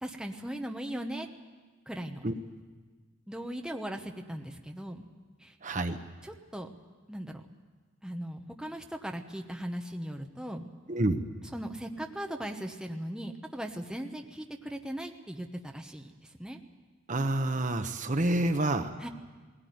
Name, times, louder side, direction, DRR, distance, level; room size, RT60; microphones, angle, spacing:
voice 1, 0.0-1.3 1.9-2.2 3.3-5.0 5.4-5.5 6.2-6.7 7.1-7.4 8.0-10.7 11.5-16.6 19.0-19.1, right 1 dB, 5° right, 3 dB, 1.1 m, -38 dB
voice 2, 5.6-6.0 10.9-11.2 17.1-18.9, right 1 dB, 40° right, 8 dB, 1.0 m, -28 dB
19.5 x 17.5 x 9.4 m, 1.4 s
head